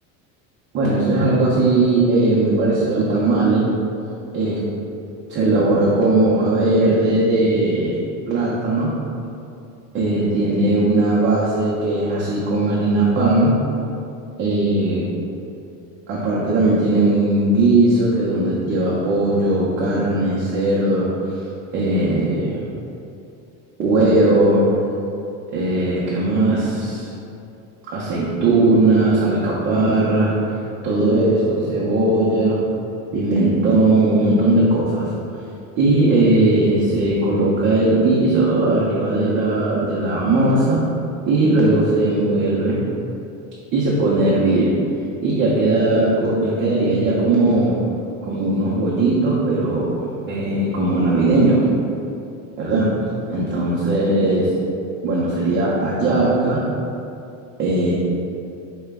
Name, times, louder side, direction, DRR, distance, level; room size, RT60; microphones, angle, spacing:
voice 1, 0.7-3.7 4.3-4.6 5.3-9.0 9.9-13.6 14.4-15.0 16.1-21.1 21.7-22.6 23.8-24.6 25.5-27.1 27.8-30.4 30.8-32.6 33.1-35.1 35.8-40.9 41.3-42.8 43.7-44.8 45.2-47.8 48.2-51.7 52.6-52.9 53.3-54.5 55.0-56.6 57.6-57.9, right 2 dB, 30° right, -6 dB, 0.5 m, -18 dB
4.7 x 2.2 x 3.4 m, 2.7 s
supercardioid pair, 135°, 41 cm